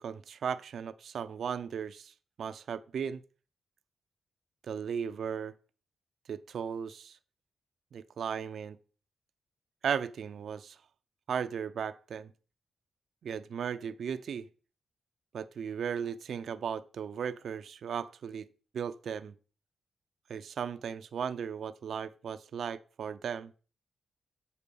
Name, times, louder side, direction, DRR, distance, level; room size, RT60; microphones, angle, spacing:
voice 1, 0.0-3.2 4.6-5.5 6.3-7.2 7.9-8.8 9.8-10.8 11.3-12.3 13.2-14.5 15.3-18.5 18.7-19.3 20.3-23.5, right 7 dB, 75° right, 0.5 m, -36 dB
8.4 x 4.3 x 6.9 m
cardioid pair, 70°, 0 cm